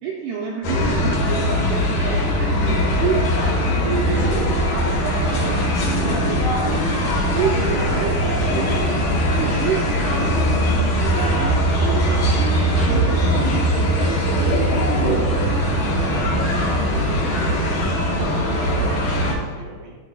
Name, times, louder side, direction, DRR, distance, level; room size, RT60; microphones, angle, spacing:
voice 1, 0.0-6.9 7.3-9.0 9.2-15.3 17.1-17.2, right 6 dB, 80° right, -2 dB, 2.3 m, -29 dB
sound 1, 0.6-19.3, equal, 55° left, 2.9 m, -20 dB
sound 2, 2.5-18.3, right 2 dB, 50° right, 3.0 m, -34 dB
voice 2, 15.9-20.0, right 2 dB, 35° right, -4 dB, 1.1 m, -36 dB
16.0 x 5.4 x 2.3 m, 1.4 s
omnidirectional pair, 5.2 m